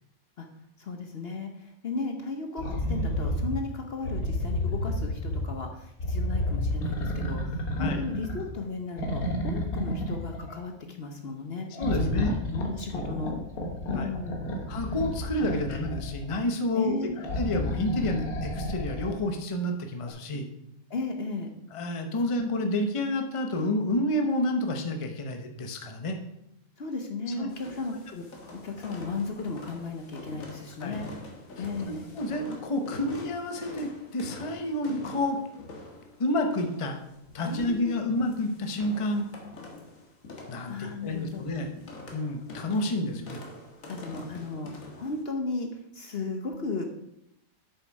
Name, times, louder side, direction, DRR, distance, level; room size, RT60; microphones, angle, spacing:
voice 1, 0.8-11.7 11.9-13.3 13.9-14.5 16.7-17.1 20.9-21.5 26.8-31.1 31.6-32.1 37.4-38.0 40.7-41.4 43.9-46.8, left 3 dB, 50° left, 4 dB, 1.0 m, -35 dB
sound 1, 2.6-3.5 4.0-5.5 6.0-8.6 9.0-10.5 11.7-16.2 17.2-19.1 20.1-20.2, left 1 dB, 90° left, 1.9 m, -31 dB
voice 2, 11.7-12.3 12.9-13.2 13.9-14.1 14.7-17.1 17.4-20.5 21.7-26.2 27.4-27.5 30.8-31.1 32.2-35.4 36.2-37.0 37.3-39.3 40.5-41.7 42.1-43.4, left 1 dB, 25° left, 4 dB, 0.8 m, -29 dB
sound 2, 27.5-45.2, left 2 dB, 70° left, 1.9 m, -45 dB
8.0 x 6.9 x 4.7 m, 0.80 s
omnidirectional pair, 1.5 m